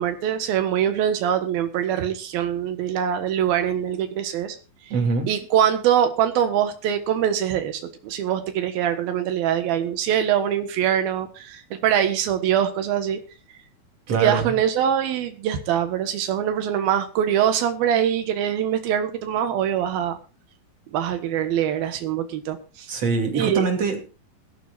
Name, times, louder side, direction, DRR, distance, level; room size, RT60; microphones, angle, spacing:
voice 1, 0.0-4.6 5.3-13.2 14.2-20.2 20.9-22.9 23.3-23.7, right 9 dB, 85° right, 8 dB, 3.2 m, -23 dB
voice 2, 4.9-5.3 14.1-14.6 22.9-24.0, right 4 dB, 45° right, 4 dB, 3.7 m, -23 dB
21.0 x 13.0 x 2.5 m, 0.32 s
omnidirectional pair, 4.2 m